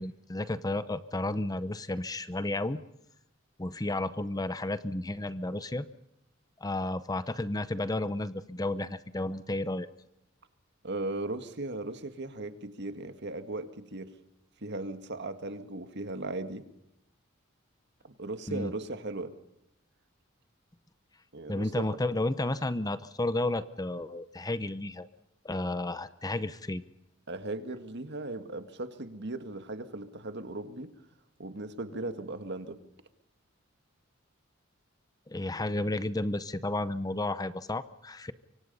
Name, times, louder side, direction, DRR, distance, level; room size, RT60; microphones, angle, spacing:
voice 1, 0.0-2.8 3.6-5.9 6.6-9.9 18.5-18.7 21.5-25.1 25.4-26.8 35.3-38.3, left 2 dB, 20° left, 14 dB, 0.8 m, -32 dB
voice 2, 10.8-14.1 14.6-16.7 18.0-19.3 21.3-21.9 27.3-30.9 31.4-32.8, right 2 dB, 55° right, 9 dB, 1.9 m, -37 dB
25.5 x 24.5 x 5.5 m, 0.86 s
head